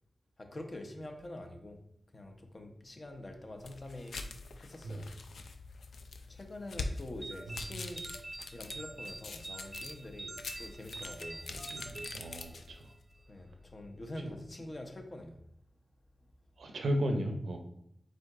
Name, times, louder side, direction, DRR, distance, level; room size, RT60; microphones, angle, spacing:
voice 1, 0.4-1.8 2.1-4.2 4.6-5.1 6.3-8.1 8.5-11.5 13.3-15.4, left 1 dB, 40° left, 4 dB, 0.8 m, -45 dB
sound 1, 3.6-12.9, left 3 dB, 85° left, 0.4 m, -45 dB
sound 2, 7.2-13.0, right 2 dB, 25° right, 0.4 m, -46 dB
voice 2, 11.5-12.9 14.2-14.3 16.6-17.6, equal, 90° right, 4 dB, 0.6 m, -35 dB
5.0 x 3.8 x 2.5 m, 0.77 s
cardioid pair, 55°, 0 cm